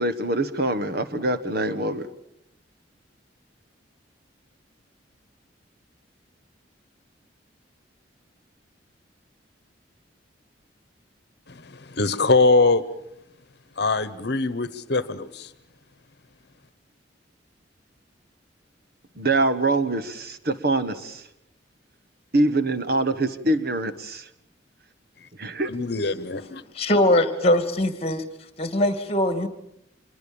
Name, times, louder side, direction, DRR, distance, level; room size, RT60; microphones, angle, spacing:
voice 1, 0.0-2.1 19.2-21.2 22.3-24.2 25.4-25.7, right 2 dB, 55° right, 1.5 m, -24 dB
voice 2, 11.9-12.8 13.8-15.5 25.6-26.6, left 3 dB, 60° left, 1.2 m, -22 dB
voice 3, 26.7-28.2 28.6-29.5, left 1 dB, 35° left, 2.4 m, -21 dB
26.5 x 22.5 x 7.2 m
head